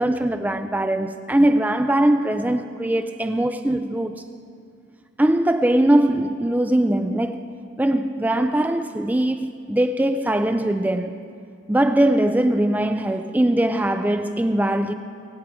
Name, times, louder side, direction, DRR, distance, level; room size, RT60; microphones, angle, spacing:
voice 1, 0.0-4.1 5.2-11.1 11.7-14.9, right 1 dB, 10° right, 0.3 m, -21 dB
21.5 x 8.9 x 4.7 m
head